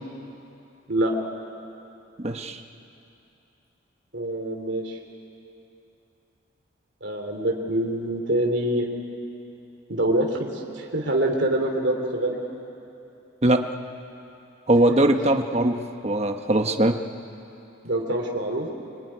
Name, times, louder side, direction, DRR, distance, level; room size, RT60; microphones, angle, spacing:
voice 1, 2.2-2.6 13.4-13.7 14.7-17.0, right 1 dB, 30° right, 6 dB, 1.1 m, -21 dB
voice 2, 4.1-5.0 7.0-8.9 9.9-12.4 17.8-18.7, right 1 dB, 65° right, 1 dB, 2.8 m, -25 dB
24.5 x 23.5 x 9.9 m, 2.9 s
head